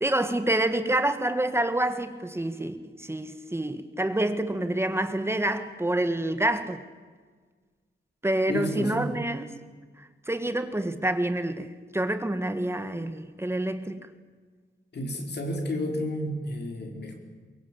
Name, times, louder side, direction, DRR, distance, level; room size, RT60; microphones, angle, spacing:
voice 1, 0.0-6.8 8.2-9.5 10.0-14.1, right 1 dB, 15° right, 1.7 m, -27 dB
voice 2, 8.5-9.1 14.9-17.2, left 1 dB, 65° left, 4.8 m, -31 dB
23.5 x 22.5 x 8.7 m
wide cardioid pair, 130°, 19 cm